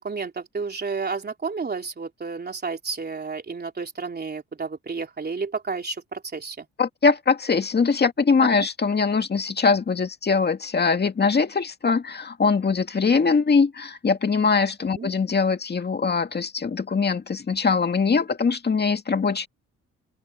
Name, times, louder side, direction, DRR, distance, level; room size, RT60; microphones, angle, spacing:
voice 1, 0.0-6.7 14.9-15.1, right 4 dB, 35° right, 3.4 m, -31 dB
voice 2, 6.8-19.5, left 5 dB, 35° left, 2.3 m, -22 dB
open air
cardioid pair, 90°, 30 cm